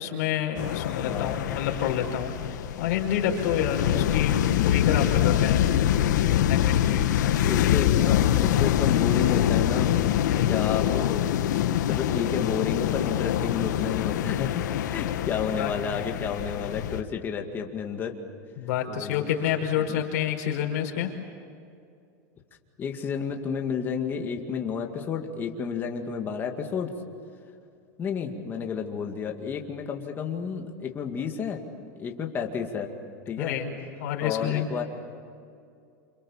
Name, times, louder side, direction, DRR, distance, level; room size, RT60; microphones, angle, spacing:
voice 1, 0.0-4.4 4.6-5.6 6.4-7.1 10.2-10.6 11.6-12.1 15.6-15.7 18.6-21.1 33.4-33.7 34.0-34.7, left 9 dB, 65° left, 1 dB, 5.2 m, -28 dB
sound 1, 0.6-17.0, left 11 dB, 90° left, 1.4 m, -25 dB
voice 2, 0.9-1.4 3.8-4.1 7.4-9.9 10.5-18.1 18.9-19.3 19.9-20.0 22.8-26.9 28.0-31.6 32.0-32.9 33.3-33.6 34.2-34.8, left 6 dB, 20° left, 3 dB, 2.2 m, -31 dB
29.0 x 26.5 x 7.4 m, 2.4 s
supercardioid pair, 160°, 10 cm